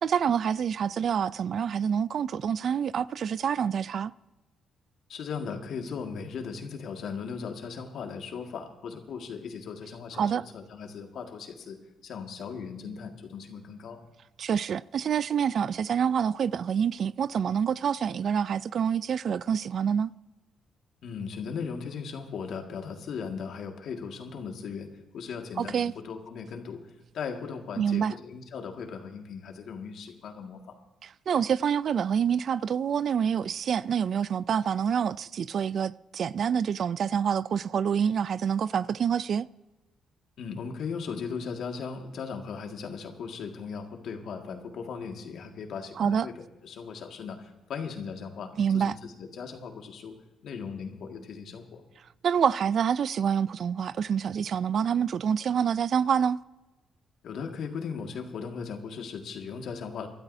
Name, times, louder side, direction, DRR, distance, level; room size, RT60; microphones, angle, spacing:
voice 1, 0.0-4.1 10.2-10.4 14.4-20.1 25.6-25.9 27.8-28.1 31.0-39.5 46.0-46.3 48.6-48.9 52.2-56.4, right 7 dB, 55° right, 0.3 m, -27 dB
voice 2, 5.1-14.0 21.0-26.9 27.1-30.8 40.4-50.1 50.4-51.8 57.2-60.1, left 6 dB, 70° left, 1.9 m, -38 dB
25.0 x 12.5 x 2.7 m
cardioid pair, 90°, 0 cm